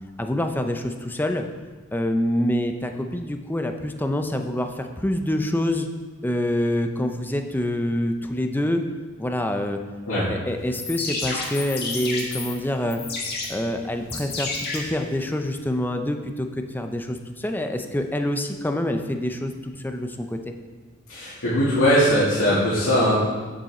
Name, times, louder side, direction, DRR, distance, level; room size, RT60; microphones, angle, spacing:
voice 1, 0.2-1.4 1.9-5.9 6.2-8.8 9.2-9.8 10.3-13.0 13.5-16.5 16.7-20.4, left 1 dB, 10° left, 5 dB, 0.6 m, -26 dB
sound 1, 10.6-15.6, left 3 dB, 50° left, 1.8 m, -32 dB
voice 2, 21.1-23.2, equal, 90° left, -11 dB, 2.4 m, -20 dB
8.1 x 7.6 x 4.3 m, 1.4 s
head